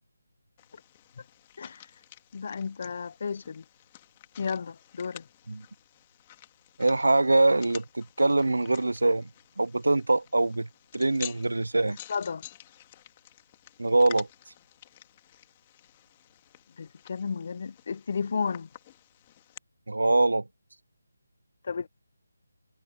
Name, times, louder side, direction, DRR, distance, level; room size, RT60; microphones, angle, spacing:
sound 1, 0.6-19.6, left 14 dB, 25° left, 2.4 m, -50 dB
voice 1, 2.3-3.6 4.4-5.2 11.9-12.5 16.8-18.7 21.6-21.9, left 5 dB, 45° left, 0.7 m, -33 dB
voice 2, 6.8-9.3 9.6-10.7 10.9-12.0 13.8-14.3 19.9-20.5, right 2 dB, 80° right, 0.3 m, -23 dB
figure-of-eight pair, 155°, 0 cm